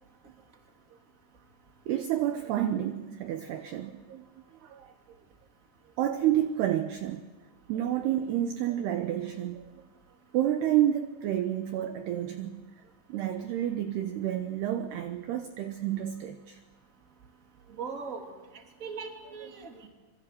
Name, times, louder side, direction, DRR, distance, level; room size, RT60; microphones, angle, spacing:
voice 1, 1.9-4.2 4.6-4.9 6.0-7.2 7.7-9.8 10.3-12.7 13.1-16.6, right 11 dB, 70° right, 7 dB, 2.6 m, -30 dB
voice 2, 17.8-18.2 18.8-19.9, right 5 dB, 20° right, 2 dB, 2.6 m, -39 dB
26.5 x 24.0 x 7.8 m, 1.3 s
omnidirectional pair, 5.6 m